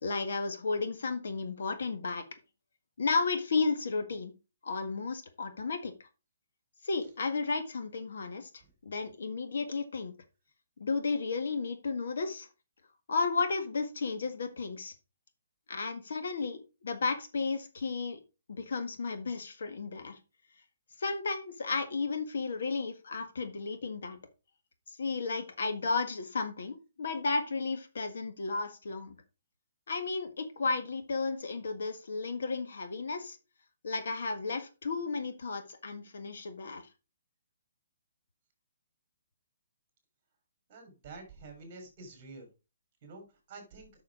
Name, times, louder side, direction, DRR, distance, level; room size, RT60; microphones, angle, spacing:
voice 1, 0.0-2.2 3.0-4.3 4.6-5.9 6.8-8.5 8.8-10.1 10.8-12.5 13.1-14.9 15.7-18.2 18.5-20.2 21.0-24.2 25.0-29.2 29.9-33.4 33.8-36.9, left 4 dB, 65° left, 8 dB, 1.7 m, -33 dB
voice 2, 40.7-42.5 43.0-43.9, right 3 dB, 25° right, 4 dB, 3.6 m, -48 dB
7.4 x 6.4 x 4.9 m, 0.29 s
hypercardioid pair, 175°, 0 cm